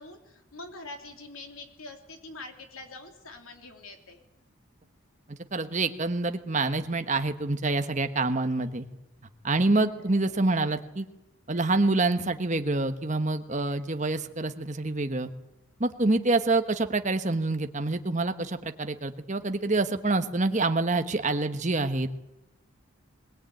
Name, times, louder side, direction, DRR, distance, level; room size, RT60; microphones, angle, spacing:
voice 1, 0.0-4.2 9.9-10.1, left 2 dB, 80° left, 4 dB, 3.2 m, -44 dB
voice 2, 5.3-8.9 9.4-11.0 11.5-15.3 15.8-22.1, right 2 dB, 35° right, 8 dB, 1.2 m, -26 dB
21.5 x 18.5 x 9.1 m, 0.96 s
head